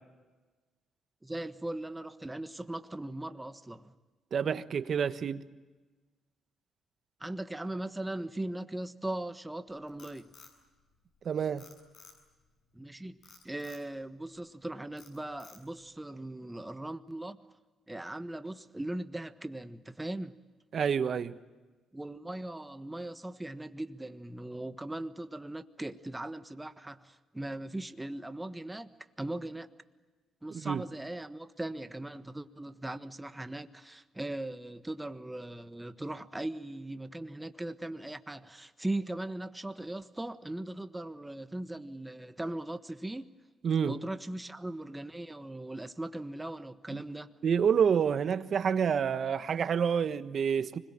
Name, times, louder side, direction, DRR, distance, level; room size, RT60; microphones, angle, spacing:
voice 1, 1.2-3.9 7.2-10.3 12.7-13.2 13.4-17.5 17.9-20.3 21.9-28.9 29.2-29.7 30.4-43.3 43.8-47.3, right 1 dB, 10° right, 1.4 m, -39 dB
voice 2, 4.3-5.4 11.2-11.6 20.7-21.4 30.5-30.8 43.6-43.9 46.9-47.0 47.4-50.8, right 7 dB, 55° right, 1.3 m, -28 dB
Frog, 9.7-11.2 11.6-12.5 13.2-13.9 14.4-14.6 15.0-15.9, left 5 dB, 60° left, 7.8 m, -55 dB
25.5 x 21.5 x 8.9 m
cardioid pair, 90°, 0 cm